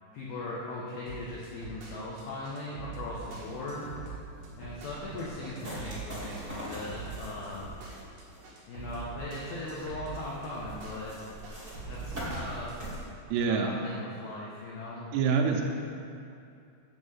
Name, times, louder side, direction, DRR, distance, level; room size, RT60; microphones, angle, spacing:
voice 1, 0.1-3.9 4.6-7.7 8.7-11.1 11.9-12.7 13.3-15.1, left 2 dB, 75° left, -5 dB, 2.2 m, -39 dB
sound 1, 1.1-13.0, right 4 dB, 65° right, 1.9 m, -43 dB
sound 2, 3.7-13.0, equal, 45° right, 0.6 m, -43 dB
voice 2, 13.3-13.7 15.1-15.6, right 6 dB, 80° right, 2 dB, 3.3 m, -26 dB
9.3 x 7.8 x 5.6 m, 2.4 s
omnidirectional pair, 5.9 m